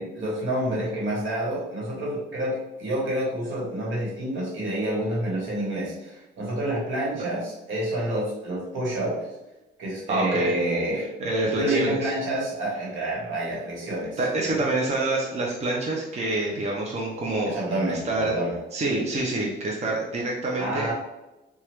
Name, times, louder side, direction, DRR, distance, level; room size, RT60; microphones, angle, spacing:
voice 1, 0.0-9.3 9.8-11.1 11.5-14.7 17.4-18.6 20.6-20.9, right 1 dB, 75° right, -4 dB, 1.3 m, -28 dB
voice 2, 10.1-10.5 11.2-12.1 14.2-17.6 17.9-18.3 18.7-20.9, right 2 dB, 35° right, -2 dB, 0.6 m, -27 dB
3.1 x 2.3 x 2.9 m, 0.99 s
cardioid pair, 90°, 20 cm